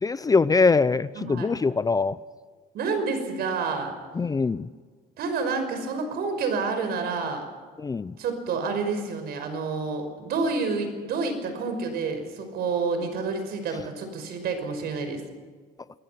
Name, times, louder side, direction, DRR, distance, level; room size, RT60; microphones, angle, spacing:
voice 1, 0.0-2.2 4.2-4.7 7.8-8.1, left 4 dB, 20° left, 16 dB, 0.6 m, -22 dB
voice 2, 1.1-1.5 2.7-4.0 5.2-7.4 8.2-15.2, right 4 dB, 70° right, 7 dB, 5.7 m, -29 dB
26.5 x 22.0 x 5.9 m, 1.5 s
cardioid pair, 110°, 17 cm